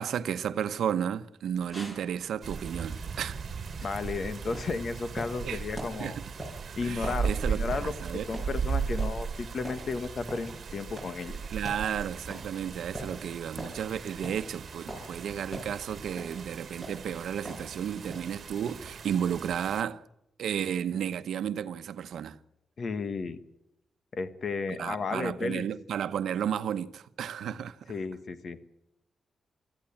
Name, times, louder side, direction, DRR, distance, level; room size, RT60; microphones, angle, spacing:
voice 1, 0.0-3.4 5.5-5.6 6.0-6.2 6.8-8.3 11.5-20.0 20.4-22.4 24.7-27.8, right 9 dB, 90° right, 0.9 m, -33 dB
sound 1, 1.5-18.7, right 1 dB, 15° left, 6.4 m, -45 dB
sound 2, 2.4-19.8, right 6 dB, 55° right, 1.7 m, -37 dB
voice 2, 3.8-6.2 6.8-7.9 8.3-11.4 22.8-23.4 24.1-25.6 27.9-28.6, left 4 dB, 55° left, 1.5 m, -33 dB
25.0 x 14.0 x 8.7 m
cardioid pair, 100°, 0 cm